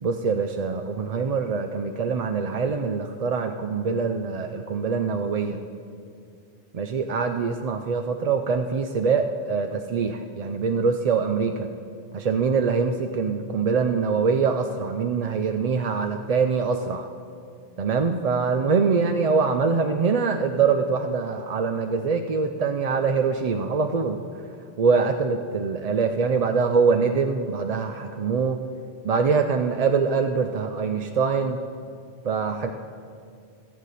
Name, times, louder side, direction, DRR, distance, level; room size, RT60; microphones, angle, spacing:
voice 1, 0.0-5.6 6.7-11.7 12.1-17.1 17.8-24.2 24.8-28.6 29.0-31.6 32.2-32.7, right 5 dB, 50° right, 6 dB, 0.5 m, -24 dB
24.5 x 8.3 x 4.1 m, 2.4 s
omnidirectional pair, 1.1 m